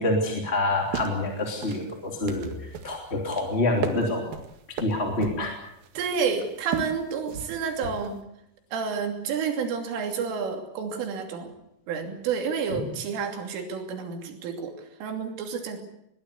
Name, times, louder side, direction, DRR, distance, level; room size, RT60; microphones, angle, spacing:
voice 1, 0.0-4.3 4.8-5.5 12.7-12.8, left 2 dB, 15° left, 1 dB, 2.4 m, -27 dB
sound 1, 0.7-8.2, right 6 dB, 55° right, 3.2 m, -37 dB
voice 2, 6.0-8.2 8.7-11.5 11.9-15.8, right 6 dB, 80° right, 4 dB, 5.3 m, -30 dB
22.0 x 19.0 x 8.3 m, 0.80 s
omnidirectional pair, 5.7 m